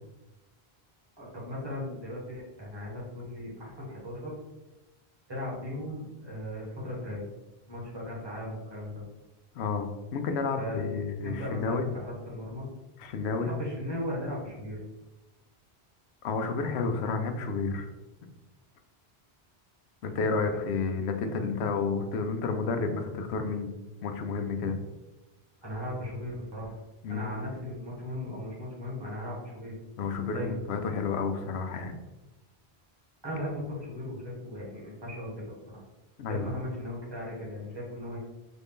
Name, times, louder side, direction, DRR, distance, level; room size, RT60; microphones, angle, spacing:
voice 1, 1.2-4.3 5.3-7.3 7.7-9.0 10.6-10.8 11.2-12.7 13.4-14.8 25.6-26.8 27.1-29.8 30.3-30.6 33.2-35.4 35.7-35.8 36.3-38.2, left 1 dB, 25° right, -5 dB, 1.3 m, -37 dB
voice 2, 9.6-9.9 10.1-11.8 13.0-13.5 16.2-17.9 20.0-23.7 24.0-24.8 27.0-27.3 30.0-32.0 36.2-36.5, left 4 dB, 85° left, 6 dB, 0.8 m, -30 dB
4.0 x 2.6 x 3.5 m, 1.0 s
omnidirectional pair, 1.1 m